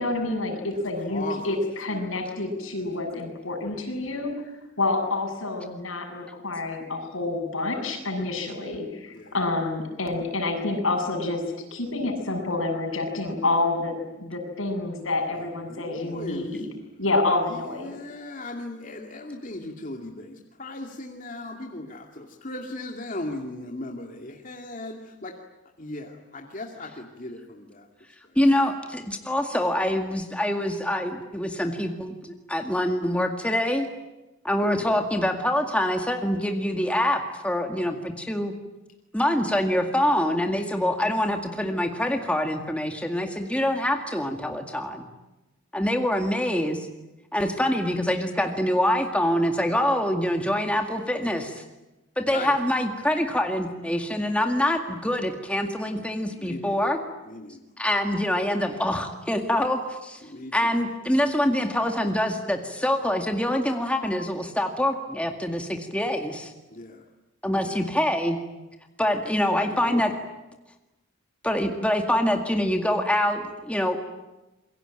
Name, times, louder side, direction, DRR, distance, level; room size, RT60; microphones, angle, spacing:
voice 1, 0.0-4.3 4.8-11.4 11.7-16.7 17.0-17.9, left 2 dB, 80° left, 2 dB, 7.6 m, -28 dB
voice 2, 1.1-1.6 1.9-2.2 9.1-9.4 15.2-16.6 17.5-25.3 25.8-27.9 34.6-34.9 52.3-52.6 56.2-56.8 57.3-57.6 60.2-60.8 66.7-67.0 67.6-67.8 69.6-70.0, left 2 dB, 40° left, 1 dB, 2.5 m, -38 dB
voice 3, 28.4-32.2 32.5-33.9 34.4-38.5 39.1-45.1 45.7-46.9 47.3-51.6 52.2-57.0 57.8-60.2 60.5-66.5 67.4-68.4 69.0-70.1 71.4-74.0, left 1 dB, 5° left, 4 dB, 2.0 m, -25 dB
27.5 x 23.5 x 9.0 m, 1.0 s
head